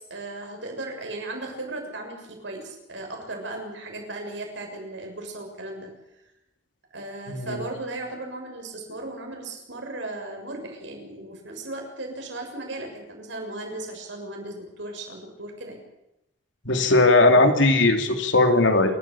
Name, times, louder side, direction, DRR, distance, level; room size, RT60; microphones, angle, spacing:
voice 1, 0.0-5.9 6.9-15.8, right 2 dB, 75° right, 2 dB, 6.9 m, -36 dB
voice 2, 7.3-7.6 16.6-19.0, left 2 dB, 80° left, 5 dB, 2.9 m, -18 dB
28.0 x 13.0 x 8.6 m, 0.88 s
head